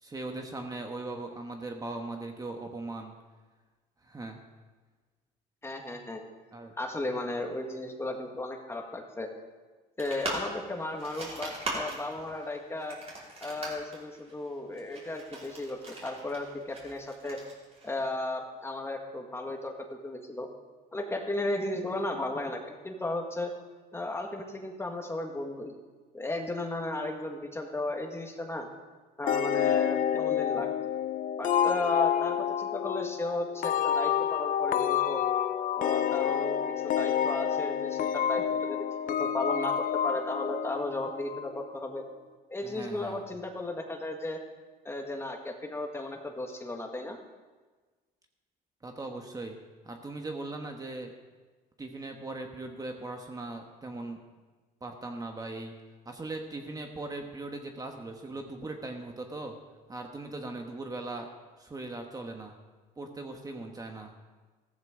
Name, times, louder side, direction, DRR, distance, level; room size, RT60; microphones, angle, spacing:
voice 1, 0.0-3.1 4.0-4.4 6.5-6.7 42.6-43.2 48.8-49.6 49.8-51.1 51.8-54.2 54.8-55.8 56.0-59.6 59.9-61.3 61.6-62.5 63.0-64.1, right 2 dB, 20° right, 3 dB, 1.3 m, -39 dB
voice 2, 5.6-6.2 6.7-9.3 10.0-13.0 13.4-17.4 17.8-20.5 20.9-23.5 23.9-25.7 26.1-28.7 29.2-30.7 31.4-35.2 35.8-36.6 36.8-42.0 42.5-44.4 44.9-47.2, left 2 dB, 15° left, 3 dB, 1.8 m, -35 dB
sound 1, 10.0-18.2, right 2 dB, 40° right, 5.0 m, -40 dB
sound 2, 29.3-41.7, left 9 dB, 50° left, 0.7 m, -29 dB
15.0 x 14.5 x 3.8 m, 1.3 s
cardioid pair, 110°, 17 cm